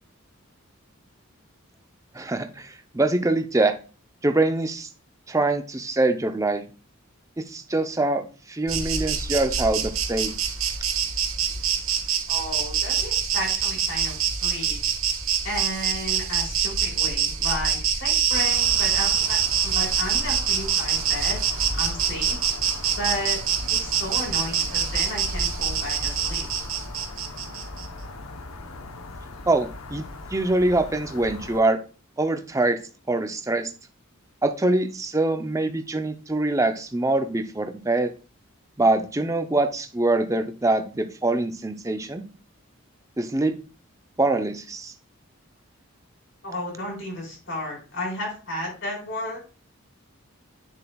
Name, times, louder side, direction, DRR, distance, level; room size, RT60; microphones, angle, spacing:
voice 1, 2.1-3.8 4.2-4.9 5.3-6.6 7.4-10.3 29.5-30.0 30.3-31.8 32.2-32.8 33.1-33.7 34.4-38.1 38.8-42.3 43.2-43.6 44.2-44.9, right 2 dB, 15° right, 7 dB, 0.6 m, -24 dB
Insect, 8.7-27.9, right 7 dB, 70° right, 1.3 m, -25 dB
voice 2, 12.3-14.8 15.4-19.4 19.6-22.4 22.9-23.4 23.8-26.4 46.4-49.4, left 1 dB, 60° left, -2 dB, 4.3 m, -33 dB
sound 1, 18.3-31.6, left 2 dB, 85° left, 0.9 m, -39 dB
9.0 x 7.1 x 2.3 m, 0.36 s
head